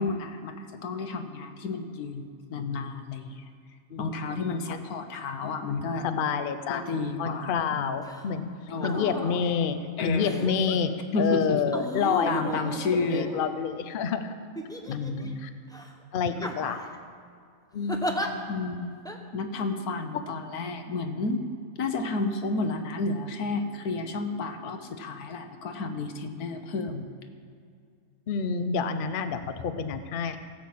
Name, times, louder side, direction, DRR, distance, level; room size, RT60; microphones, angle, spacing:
voice 1, 0.0-3.4 4.0-6.1 6.7-8.0 8.7-9.1 10.0-10.4 11.1-11.6 12.3-13.3 14.9-15.4 18.5-18.9 19.3-21.4 21.8-27.1, left 3 dB, 85° left, 7 dB, 1.5 m, -31 dB
voice 2, 3.9-4.8 6.0-6.8 7.2-8.5 8.8-14.3 15.4-15.5 16.1-16.8 17.7-18.7 20.1-20.3 28.3-30.4, left 6 dB, 50° left, 9 dB, 0.7 m, -29 dB
sound 1, 8.0-8.3 8.7-9.4 10.2-10.7 11.7-13.8 14.6-15.3 15.7-15.9 16.4-17.0 17.9-18.3 19.1-19.2, equal, 5° left, 0.6 m, -35 dB
16.5 x 5.7 x 7.7 m, 2.2 s
omnidirectional pair, 1.5 m